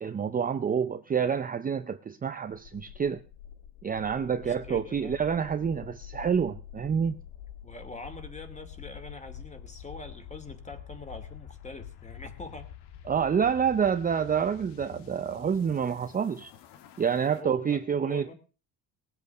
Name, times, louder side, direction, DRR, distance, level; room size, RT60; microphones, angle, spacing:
voice 1, 0.0-3.2 3.8-7.2 13.1-16.5 17.0-18.3, right 7 dB, 20° right, 0.6 m, -28 dB
sound 1, 2.5-17.4, left 9 dB, 80° left, 1.8 m, -47 dB
voice 2, 4.4-5.2 7.6-12.7 17.3-18.3, left 3 dB, 15° left, 2.6 m, -44 dB
19.0 x 8.3 x 6.6 m
cardioid pair, 130°, 40 cm